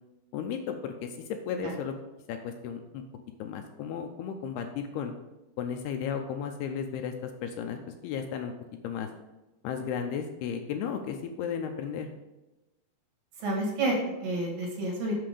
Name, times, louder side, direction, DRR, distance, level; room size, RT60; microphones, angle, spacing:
voice 1, 0.3-1.1 1.5-1.9 2.3-3.0 3.4-5.1 5.6-8.5 8.8-9.1 9.6-12.1, left 7 dB, 85° left, 5 dB, 2.5 m, -34 dB
voice 2, 13.4-15.1, right 1 dB, 60° right, -2 dB, 3.2 m, -29 dB
7.7 x 6.1 x 5.0 m, 1.0 s
omnidirectional pair, 4.9 m